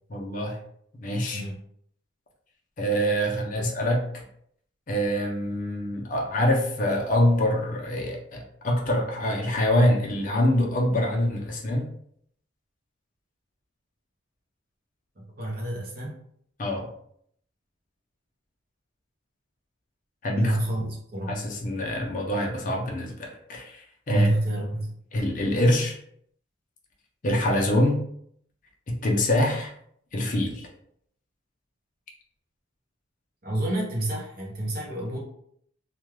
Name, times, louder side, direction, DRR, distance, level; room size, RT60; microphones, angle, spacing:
voice 1, 0.1-0.6 1.0-1.4 2.8-4.2 4.9-11.9 16.6-16.9 20.2-20.6 21.3-24.3 25.1-26.0 27.2-28.0 28.9-29.7 30.1-30.7, left 1 dB, 40° left, 0 dB, 0.5 m, -25 dB
voice 2, 3.3-3.6 15.2-16.1 20.3-21.4 24.1-24.9 33.4-35.2, right 1 dB, 45° right, -2 dB, 0.6 m, -28 dB
2.3 x 2.2 x 3.1 m, 0.67 s
head